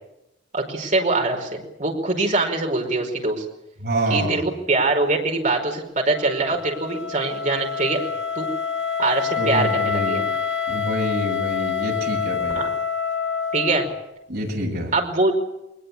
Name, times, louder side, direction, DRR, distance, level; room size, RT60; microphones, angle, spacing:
voice 1, 0.5-3.4 4.1-4.4 4.7-8.0 8.3-8.5 9.0-10.2 12.5-12.7 13.5-13.8 14.9-15.3, right 2 dB, 45° right, 2 dB, 5.0 m, -23 dB
voice 2, 3.8-4.4 9.4-10.3 10.7-12.6 14.3-14.9, right 1 dB, 60° right, 1 dB, 7.5 m, -26 dB
Wind instrument woodwind instrument, 6.1-14.1, left 7 dB, 75° left, 2.2 m, -27 dB
22.0 x 21.0 x 8.7 m, 0.88 s
head